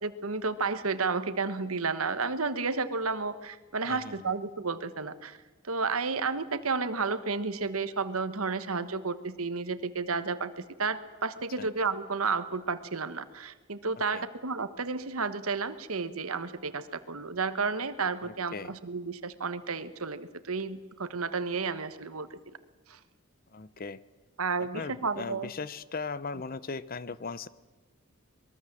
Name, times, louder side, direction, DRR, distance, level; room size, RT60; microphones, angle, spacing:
voice 1, 0.0-5.4 5.6-22.6 22.9-23.0 24.4-25.5, right 4 dB, 85° right, 12 dB, 1.4 m, -32 dB
voice 2, 3.9-4.3 11.6-11.7 14.1-14.3 18.2-18.7 23.5-24.0 24.6-27.5, left 4 dB, 40° left, 18 dB, 0.7 m, -38 dB
23.5 x 21.5 x 7.6 m, 1.2 s
head